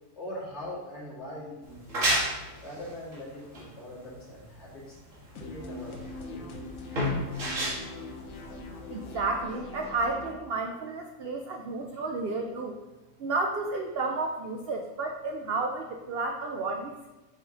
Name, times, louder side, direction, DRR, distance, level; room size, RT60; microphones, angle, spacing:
voice 1, 0.1-2.2 2.6-5.0 5.4-6.6, left 1 dB, 45° left, -6 dB, 2.2 m, -42 dB
sound 1, 1.6-9.0, equal, 55° right, 2.0 m, -32 dB
sound 2, 5.3-10.3, left 2 dB, 60° left, 1.1 m, -42 dB
voice 2, 8.9-12.8 13.2-17.1, right 3 dB, 75° right, 3 dB, 0.5 m, -32 dB
6.0 x 5.2 x 3.8 m, 1.1 s
omnidirectional pair, 1.7 m